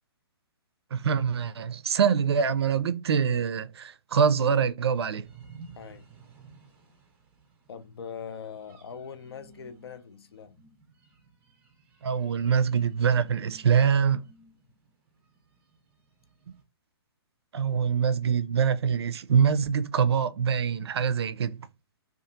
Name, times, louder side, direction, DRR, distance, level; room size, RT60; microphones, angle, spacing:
voice 1, 0.9-5.3 12.0-14.2 17.5-21.6, right 7 dB, 80° right, 0.4 m, -24 dB
sound 1, 5.2-16.6, right 4 dB, 15° right, 0.5 m, -54 dB
voice 2, 7.7-10.6, left 7 dB, 70° left, 0.5 m, -41 dB
2.7 x 2.4 x 2.4 m
hypercardioid pair, 160°, 13 cm